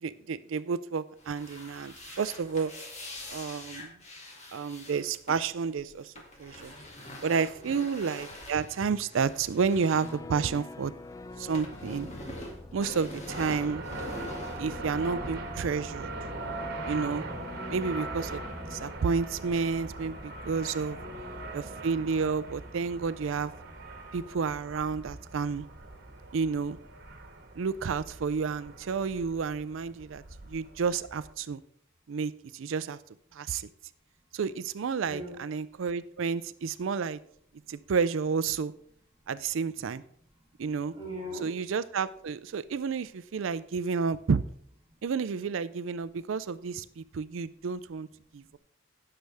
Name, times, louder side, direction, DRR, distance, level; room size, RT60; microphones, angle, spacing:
voice 1, 0.0-2.7 3.3-3.9 4.5-6.1 6.4-6.7 7.2-10.9 11.4-12.1 12.7-13.8 14.6-16.1 16.9-17.3 17.7-18.4 18.7-21.0 21.5-23.5 24.1-25.7 26.3-26.8 27.6-30.2 30.5-31.6 32.1-33.0 33.3-33.7 34.3-37.2 37.7-38.7 39.3-40.0 40.6-40.9 41.4-44.4 45.0-48.1 48.3-48.6, right 5 dB, 70° right, 16 dB, 0.4 m, -30 dB
sound 1, 1.2-11.0 11.2-15.3, left 1 dB, 35° left, 2.3 m, -44 dB
voice 2, 7.5-7.8 17.5-17.9 20.9-21.5 34.2-34.3 35.0-35.4 35.8-35.9 37.7-37.9 39.1-39.4 40.2-40.6 40.9-41.6 44.9-45.0 46.2-46.4 46.9-47.0 47.3-47.6 48.2-48.6, equal, 25° right, -3 dB, 3.1 m, -44 dB
sound 2, 9.8-18.9, left 2 dB, 15° left, 0.5 m, -45 dB
sound 3, 13.3-31.3, right 2 dB, 50° right, 1.4 m, -41 dB
16.5 x 6.8 x 3.4 m, 0.67 s
head